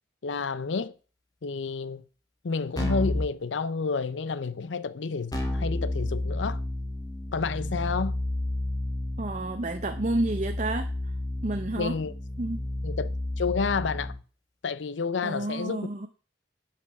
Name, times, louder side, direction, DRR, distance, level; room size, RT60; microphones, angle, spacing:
voice 1, 0.2-0.9 1.4-2.0 2.4-6.6 7.3-8.1 11.8-12.1 12.8-14.1 14.6-15.9, left 5 dB, 90° left, 0.6 m, -30 dB
Keyboard (musical), 2.8-3.3 5.3-14.2, left 1 dB, 20° left, 2.1 m, -31 dB
voice 2, 9.2-10.9 11.4-12.0 12.4-12.6 15.2-16.1, right 2 dB, 40° right, 0.8 m, -30 dB
11.0 x 5.9 x 5.9 m
head